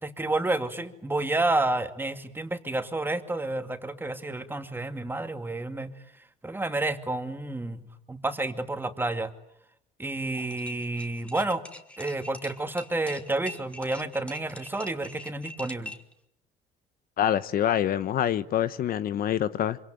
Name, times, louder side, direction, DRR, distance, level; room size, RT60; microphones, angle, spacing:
voice 1, 0.0-5.9 6.4-7.8 8.1-9.3 10.0-11.6 12.0-15.9, right 2 dB, 10° right, 2.4 m, -30 dB
sound 1, 10.3-16.1, left 1 dB, 5° left, 2.3 m, -43 dB
voice 2, 17.2-19.8, left 10 dB, 60° left, 1.0 m, -26 dB
26.0 x 25.0 x 9.1 m
cardioid pair, 110°, 17 cm